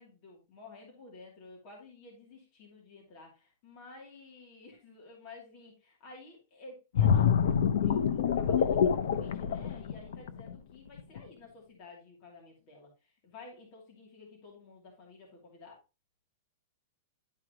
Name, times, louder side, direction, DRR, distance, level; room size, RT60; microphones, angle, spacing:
voice 1, 0.0-7.4 7.7-12.9 13.2-15.8, left 3 dB, 30° left, -2 dB, 2.7 m, -52 dB
sound 1, 7.0-10.5 11.0-11.2, left 7 dB, 60° left, 0.8 m, -26 dB
11.5 x 4.9 x 2.9 m, 0.28 s
supercardioid pair, 175°, 0 cm